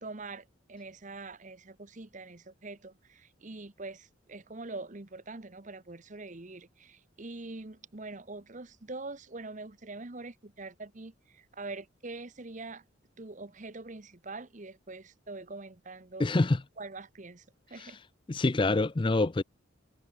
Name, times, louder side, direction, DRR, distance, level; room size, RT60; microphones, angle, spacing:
voice 1, 0.0-12.8 13.2-16.3 16.8-18.0, right 3 dB, 40° right, 1.1 m, -44 dB
voice 2, 16.2-16.6 17.8-18.0 18.3-19.4, left 2 dB, 25° left, 0.5 m, -26 dB
head